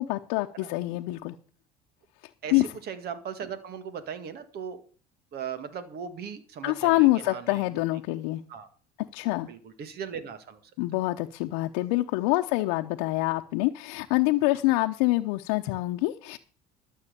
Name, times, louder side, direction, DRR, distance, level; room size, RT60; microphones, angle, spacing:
voice 1, 0.0-1.3 2.5-2.6 6.6-8.4 9.1-9.5 10.8-16.4, left 19 dB, 90° left, 3 dB, 0.8 m, -26 dB
voice 2, 2.4-4.8 5.3-7.8 8.5-8.7 9.5-10.7, right 7 dB, 55° right, 12 dB, 1.9 m, -38 dB
12.5 x 7.5 x 6.8 m, 0.42 s
supercardioid pair, 105°, 19 cm